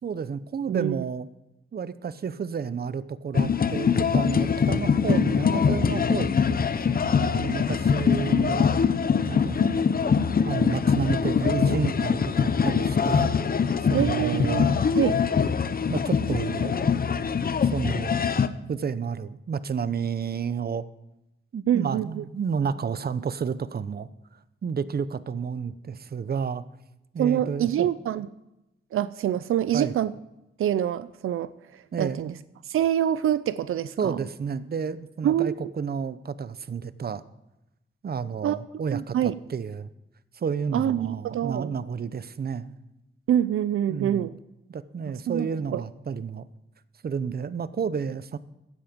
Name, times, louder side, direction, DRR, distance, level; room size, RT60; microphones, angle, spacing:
voice 1, 0.0-1.3 1.7-6.7 7.2-8.7 9.2-9.7 10.4-13.3 13.9-14.8 15.9-17.0 17.7-18.2 18.7-20.8 21.5-24.1 24.6-26.6 27.1-27.9 29.7-29.9 31.9-32.3 34.0-37.2 38.0-39.9 40.3-42.8 43.9-44.3 44.7-46.5 47.0-48.4, right 6 dB, 50° right, 15 dB, 0.7 m, -31 dB
sound 1, 3.3-18.5, left 6 dB, 45° left, 0.8 m, -23 dB
voice 2, 13.9-14.7 15.0-15.2 21.7-22.2 27.2-28.3 28.9-30.1 30.6-31.5 32.0-32.3 32.7-34.2 35.2-35.5 38.4-38.6 38.9-39.3 40.7-41.7 43.3-44.3 45.3-45.8, right 10 dB, 85° right, 15 dB, 0.5 m, -25 dB
15.0 x 10.5 x 5.2 m, 0.92 s
cardioid pair, 85°, 21 cm